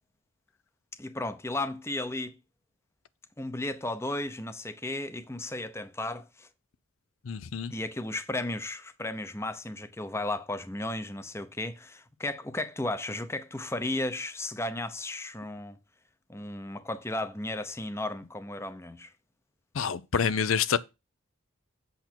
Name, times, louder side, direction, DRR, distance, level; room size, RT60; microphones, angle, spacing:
voice 1, 1.0-2.3 3.4-6.5 7.7-15.8 16.3-19.1, left 2 dB, 10° left, 0.7 m, -34 dB
voice 2, 7.3-7.7 19.7-20.8, left 6 dB, 75° left, 0.5 m, -27 dB
8.2 x 5.8 x 4.4 m
head